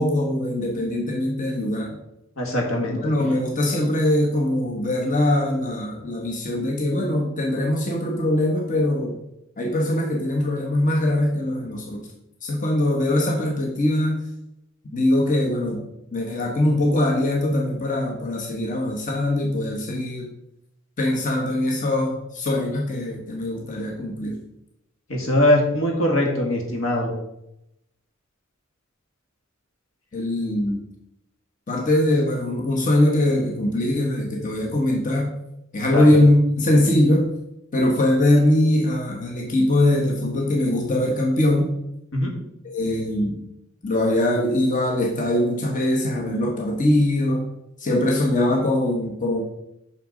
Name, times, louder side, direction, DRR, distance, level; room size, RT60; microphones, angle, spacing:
voice 1, 0.0-1.9 2.9-9.1 9.6-12.0 12.4-14.2 14.9-15.8 16.1-20.3 21.0-24.4 30.1-30.8 31.7-35.3 35.7-37.3 37.7-41.7 42.6-43.4 43.8-47.5 47.8-49.4, left 1 dB, 40° left, -1 dB, 1.4 m, -22 dB
voice 2, 2.4-3.0 25.1-27.1 35.9-36.1 42.1-42.3, left 1 dB, 75° left, 1 dB, 2.1 m, -21 dB
6.8 x 6.3 x 5.2 m, 0.83 s
head